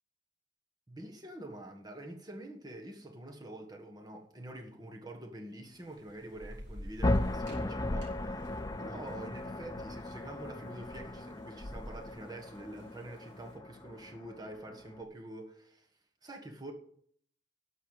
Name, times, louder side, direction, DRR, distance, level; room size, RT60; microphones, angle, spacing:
voice 1, 0.9-15.9 16.2-16.7, right 1 dB, 20° right, 1.5 m, -46 dB
Thunder / Rain, 5.6-13.3, equal, 90° right, 3.3 m, -48 dB
sound 1, 7.0-15.0, left 1 dB, 20° left, 0.5 m, -36 dB
11.5 x 6.6 x 7.5 m
head